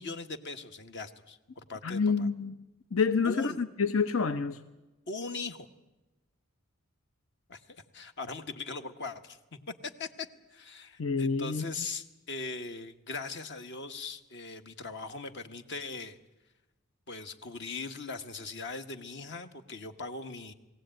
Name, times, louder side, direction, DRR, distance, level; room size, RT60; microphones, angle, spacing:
voice 1, 0.0-2.3 3.2-3.6 5.1-5.7 7.5-16.2 17.1-20.5, left 3 dB, 60° left, 8 dB, 1.4 m, -40 dB
voice 2, 1.8-2.5 2.9-4.6 11.0-11.9, left 5 dB, 75° left, 10 dB, 0.9 m, -28 dB
21.0 x 17.0 x 9.0 m, 1.1 s
head